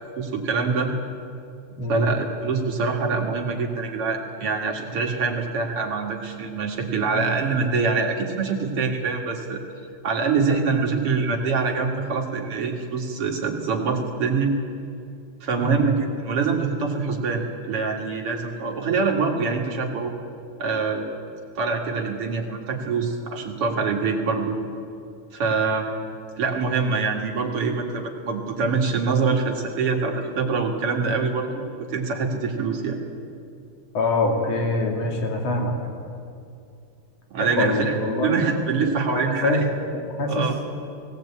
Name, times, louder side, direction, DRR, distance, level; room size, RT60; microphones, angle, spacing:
voice 1, 0.2-0.9 1.9-9.6 10.0-14.5 15.4-20.1 20.6-21.1 21.6-24.6 25.3-25.9 26.4-33.0 37.3-37.9 38.2-39.7 40.3-40.6, right 4 dB, 50° right, 1 dB, 2.6 m, -24 dB
voice 2, 15.6-15.9 33.9-35.7 37.4-38.5 39.1-39.6 40.1-40.5, left 2 dB, 50° left, 1 dB, 3.7 m, -24 dB
18.5 x 18.0 x 8.7 m, 2.5 s
omnidirectional pair, 3.8 m